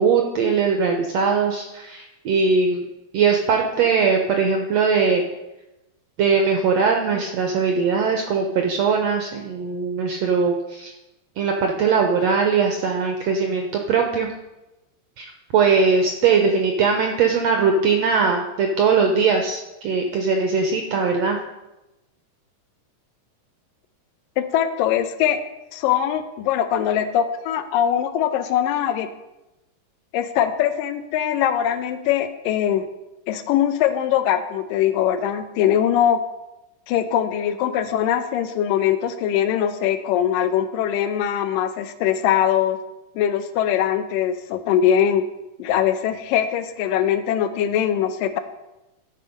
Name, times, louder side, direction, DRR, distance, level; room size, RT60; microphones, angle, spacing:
voice 1, 0.0-2.9 3.1-5.2 6.2-10.9 11.4-14.3 15.2-21.4, right 5 dB, 75° right, 3 dB, 1.6 m, -20 dB
voice 2, 24.4-25.4 25.7-29.1 30.1-32.8 33.3-36.2 36.9-42.8 43.2-45.2 45.6-48.4, left 10 dB, 85° left, 10 dB, 2.4 m, -21 dB
12.5 x 5.6 x 5.2 m, 0.98 s
omnidirectional pair, 3.8 m